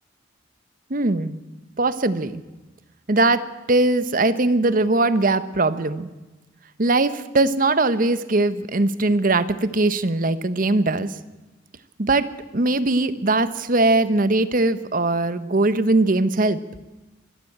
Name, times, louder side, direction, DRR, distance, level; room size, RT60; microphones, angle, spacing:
voice 1, 0.9-1.4 1.8-2.4 3.1-6.1 6.8-11.1 12.0-16.6, right 2 dB, 50° right, 13 dB, 1.0 m, -20 dB
24.0 x 12.5 x 8.7 m, 1.1 s
head